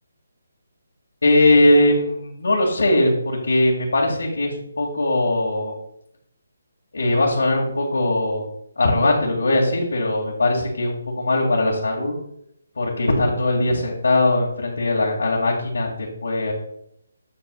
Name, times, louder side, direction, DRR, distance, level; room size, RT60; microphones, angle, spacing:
voice 1, 1.2-5.7 6.9-8.5 8.8-12.1 12.8-16.5, left 1 dB, 80° left, -4 dB, 2.0 m, -20 dB
8.2 x 7.8 x 2.3 m, 0.73 s
hypercardioid pair, 175°, 0 cm